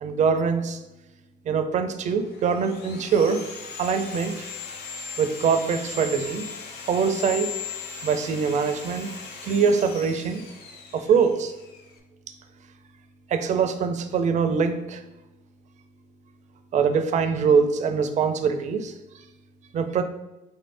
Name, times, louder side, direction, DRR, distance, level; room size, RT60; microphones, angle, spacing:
voice 1, 0.0-0.8 1.5-3.5 3.8-4.5 5.2-6.4 6.9-7.5 8.0-9.1 9.4-10.4 10.9-11.5 13.3-15.0 16.7-18.9 19.7-20.0, right 6 dB, 45° right, 8 dB, 0.4 m, -23 dB
Sawing, 2.1-12.0, left 5 dB, 75° left, 0.6 m, -38 dB
3.7 x 2.6 x 3.3 m, 1.0 s
cardioid pair, 110°, 17 cm